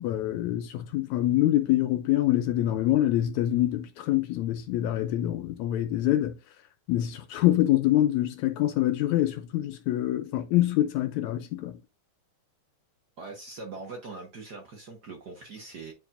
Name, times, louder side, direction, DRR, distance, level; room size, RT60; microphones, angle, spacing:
voice 1, 0.0-6.3 6.9-11.8, left 14 dB, 80° left, 1.9 m, -25 dB
voice 2, 13.2-15.9, right 3 dB, 65° right, 1.0 m, -42 dB
9.4 x 4.6 x 2.5 m
omnidirectional pair, 3.6 m